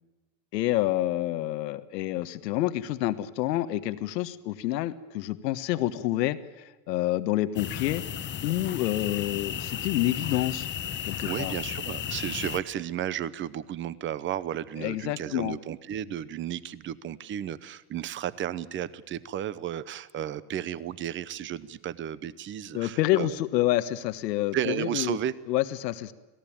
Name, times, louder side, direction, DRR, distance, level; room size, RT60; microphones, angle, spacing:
voice 1, 0.5-8.0 8.4-10.7 11.0-11.6 14.8-15.6 22.7-25.2 25.5-26.1, left 15 dB, 85° left, 11 dB, 1.5 m, -28 dB
sound 1, 7.6-12.6, left 9 dB, 25° left, 1.1 m, -34 dB
voice 2, 11.2-23.3 24.5-25.3, right 10 dB, 25° right, 18 dB, 0.8 m, -33 dB
26.5 x 17.5 x 8.8 m, 1.2 s
supercardioid pair, 145°, 48 cm